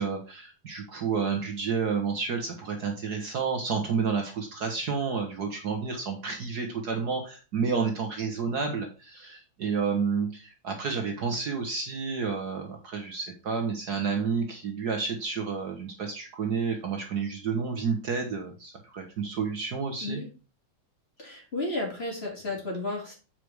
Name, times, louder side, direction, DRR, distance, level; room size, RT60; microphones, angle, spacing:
voice 1, 0.0-20.2, right 5 dB, 55° right, 3 dB, 1.5 m, -30 dB
voice 2, 21.2-23.1, left 2 dB, 30° left, -1 dB, 2.9 m, -33 dB
7.7 x 4.9 x 4.7 m, 0.34 s
omnidirectional pair, 2.3 m